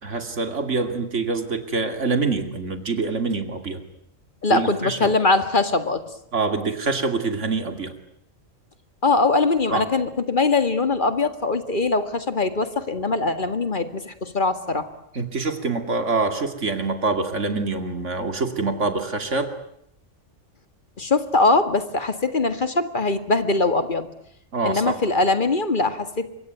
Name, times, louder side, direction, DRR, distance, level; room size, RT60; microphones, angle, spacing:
voice 1, 0.0-3.8 4.5-5.1 6.3-7.9 9.7-9.8 15.1-19.5 24.5-25.0, right 3 dB, 70° right, 7 dB, 2.9 m, -25 dB
voice 2, 4.4-6.1 9.0-14.9 21.0-24.1 24.6-26.3, left 3 dB, 40° left, 9 dB, 2.0 m, -22 dB
25.5 x 23.0 x 9.3 m, 0.71 s
omnidirectional pair, 1.3 m